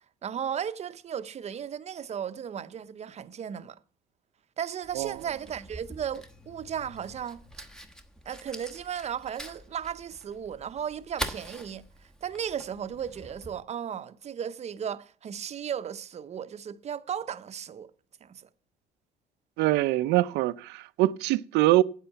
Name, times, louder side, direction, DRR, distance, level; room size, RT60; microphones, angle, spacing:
voice 1, 0.2-3.8 4.6-7.4 8.3-11.9 12.2-17.9 18.2-18.5, right 8 dB, 40° right, 0.7 m, -35 dB
Fire, 4.8-13.6, equal, 5° left, 1.1 m, -44 dB
voice 2, 19.6-21.8, right 17 dB, 85° right, 0.5 m, -24 dB
9.1 x 7.9 x 8.1 m
cardioid pair, 110°, 17 cm